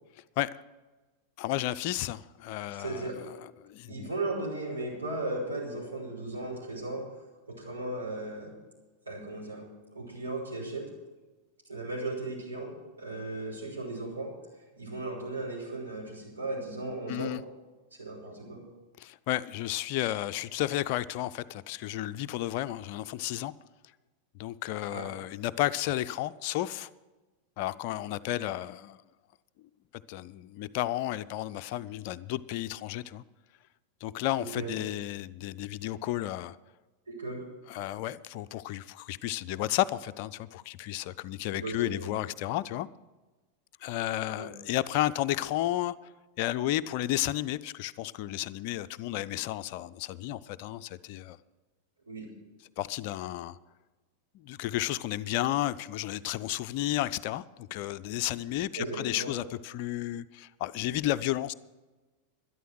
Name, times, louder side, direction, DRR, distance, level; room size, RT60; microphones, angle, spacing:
voice 1, 1.4-4.1 17.1-17.4 19.0-23.5 24.4-26.9 27.6-29.0 30.1-33.2 34.0-36.6 37.7-42.9 43.8-46.0 46.4-51.4 52.8-53.6 54.3-61.5, left 14 dB, 45° left, 0.4 m, -32 dB
voice 2, 2.8-3.2 3.9-7.1 7.5-8.5 9.1-9.6 9.9-10.9 11.7-14.3 14.8-17.3 18.0-18.6 24.9-25.1 34.4-34.7 37.1-37.4 41.5-42.1 44.4-44.5 52.1-52.3 58.7-59.3, right 2 dB, 75° right, 5.7 m, -36 dB
12.5 x 11.0 x 6.3 m
figure-of-eight pair, 90°, 0 cm